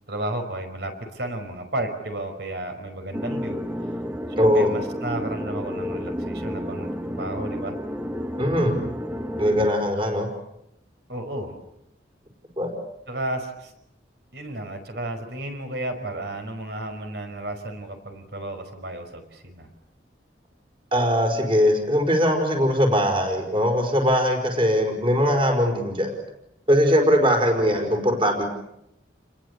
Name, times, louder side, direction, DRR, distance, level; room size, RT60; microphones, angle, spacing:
voice 1, 0.1-3.6 4.4-7.8 11.1-11.6 13.1-13.7 14.3-19.7 27.6-27.8, right 1 dB, 60° right, 6 dB, 5.4 m, -33 dB
sound 1, 3.1-9.7, equal, 10° right, 1.2 m, -31 dB
voice 2, 4.4-4.7 8.4-8.7 9.4-10.3 12.6-12.7 20.9-26.1 26.7-28.5, equal, 30° right, 4 dB, 5.2 m, -20 dB
30.0 x 21.5 x 8.4 m, 0.82 s
head